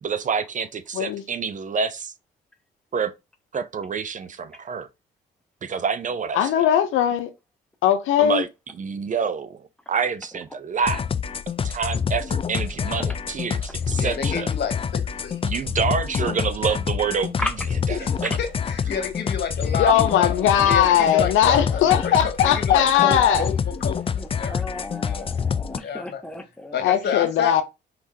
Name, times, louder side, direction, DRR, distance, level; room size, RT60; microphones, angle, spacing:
voice 1, 0.0-2.1 2.9-3.1 3.5-4.9 5.6-6.6 8.2-8.5 8.8-11.0 11.6-14.5 15.4-17.5 17.9-18.4 19.9-20.0, right 6 dB, 40° right, 0.6 m, -27 dB
voice 2, 6.3-7.3 7.8-8.4 19.8-23.4 26.8-27.6, left 10 dB, 85° left, 0.7 m, -19 dB
sound 1, 10.8-25.8, left 7 dB, 30° left, 0.4 m, -27 dB
voice 3, 13.9-15.4 18.0-18.1 18.4-20.4 20.7-23.5 23.8-24.6 25.1-25.3 25.8-26.2 26.7-27.6, left 7 dB, 55° left, 1.6 m, -30 dB
voice 4, 20.0-22.0 22.7-23.5 24.2-26.8, left 1 dB, 5° left, 0.9 m, -34 dB
4.7 x 3.6 x 2.8 m
cardioid pair, 90°, 20 cm